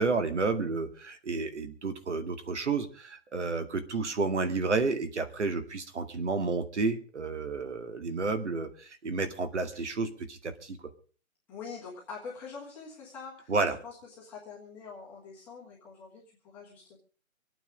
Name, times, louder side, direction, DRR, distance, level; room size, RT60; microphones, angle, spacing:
voice 1, 0.0-10.8 13.5-13.8, right 4 dB, 55° right, 9 dB, 2.1 m, -31 dB
voice 2, 11.5-13.5 13.8-17.0, left 5 dB, 5° left, -8 dB, 1.4 m, -45 dB
25.0 x 9.1 x 5.1 m, 0.40 s
hypercardioid pair, 175°, 42 cm